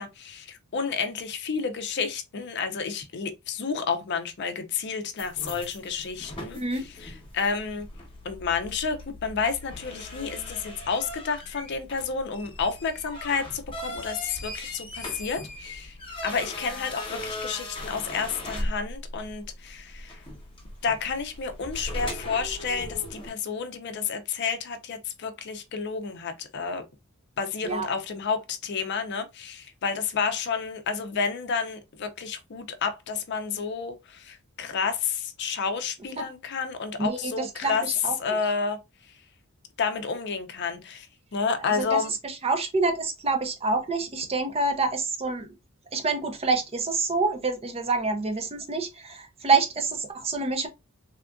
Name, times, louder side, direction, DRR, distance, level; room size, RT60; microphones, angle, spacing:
voice 1, 0.0-7.9 8.2-15.9 16.2-20.2 20.8-26.8 27.4-37.9 38.2-38.8 39.8-41.1 41.3-42.1, left 5 dB, 55° left, 0.5 m, -30 dB
sound 1, 5.2-23.3, left 1 dB, 25° left, 0.9 m, -39 dB
voice 2, 6.5-6.9 27.6-27.9 36.2-36.3 37.0-38.4 41.7-45.5 45.9-50.7, right 3 dB, 30° right, 0.5 m, -27 dB
3.5 x 2.4 x 2.2 m
head